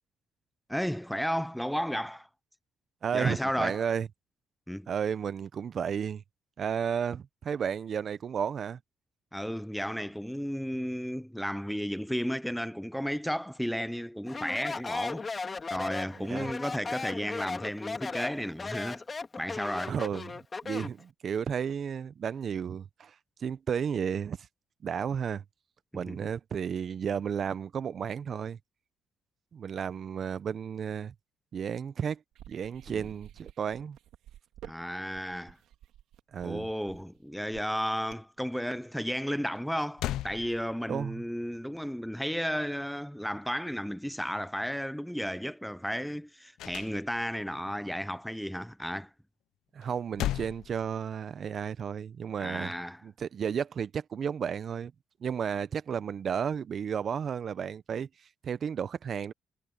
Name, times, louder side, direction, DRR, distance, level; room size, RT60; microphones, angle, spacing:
voice 1, 0.7-2.3 3.1-3.8 4.7-4.9 9.3-15.3 15.7-19.0 19.4-19.9 26.1-26.2 32.9-33.1 34.6-35.6 36.4-49.1 52.4-53.0, equal, ahead, 0.7 m, -33 dB
voice 2, 3.0-4.1 4.9-6.2 6.6-8.8 16.2-16.5 19.9-24.5 24.8-25.4 25.9-28.6 29.5-31.1 31.5-32.2 32.5-34.0 36.3-36.7 40.9-41.2 49.7-52.7 53.0-54.9 55.2-59.3, right 7 dB, 55° right, 0.9 m, -33 dB
Speech, 14.3-21.0, left 4 dB, 30° left, 2.2 m, -36 dB
sound 1, 32.3-38.4, right 12 dB, 75° right, 2.9 m, -51 dB
sound 2, 39.6-39.7 40.0-41.1 46.6-47.5 49.8-51.4, left 14 dB, 80° left, 0.8 m, -36 dB
supercardioid pair, 70°, 0 cm